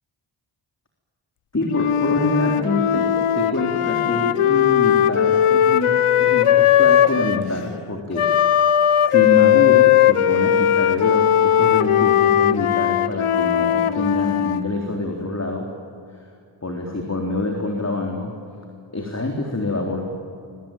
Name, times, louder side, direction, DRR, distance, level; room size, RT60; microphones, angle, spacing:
voice 1, 1.5-8.3 9.1-15.7 16.6-18.3 18.9-20.1, left 2 dB, 30° left, 1 dB, 3.8 m, -26 dB
Wind instrument woodwind instrument, 1.7-7.5 8.1-14.6, left 10 dB, 90° left, 0.9 m, -18 dB
26.5 x 24.0 x 9.2 m, 2.4 s
cardioid pair, 50°, 49 cm